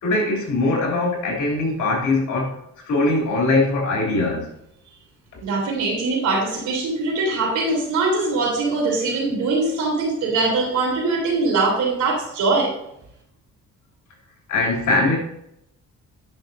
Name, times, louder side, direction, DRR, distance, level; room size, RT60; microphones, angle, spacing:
voice 1, 0.0-2.6 2.8-4.5 14.5-15.2, left 2 dB, 75° left, -1 dB, 2.9 m, -21 dB
voice 2, 5.4-12.7, right 3 dB, 75° right, -1 dB, 3.2 m, -22 dB
9.2 x 6.3 x 2.6 m, 0.76 s
cardioid pair, 90°, 30 cm